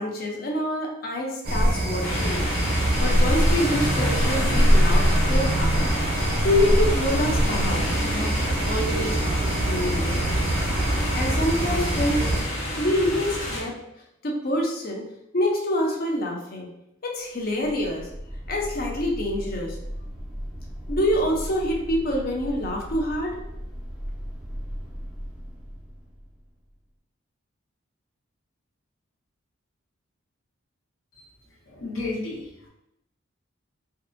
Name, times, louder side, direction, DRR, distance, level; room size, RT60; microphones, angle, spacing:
voice 1, 0.0-2.5 3.0-8.3 8.7-10.2 11.1-12.3 12.8-13.8 14.2-15.0 15.3-16.7 17.0-18.1 18.5-19.8 20.9-23.4, left 1 dB, 45° left, 0 dB, 0.5 m, -26 dB
sound 1, 1.4-12.4, right 1 dB, 50° right, 0.6 m, -23 dB
sound 2, 2.0-13.6, equal, 65° left, 1.4 m, -29 dB
sound 3, 17.3-26.7, equal, 5° right, 0.4 m, -37 dB
voice 2, 31.7-32.7, left 2 dB, 80° left, -3 dB, 0.9 m, -32 dB
2.6 x 2.4 x 2.5 m, 0.83 s
head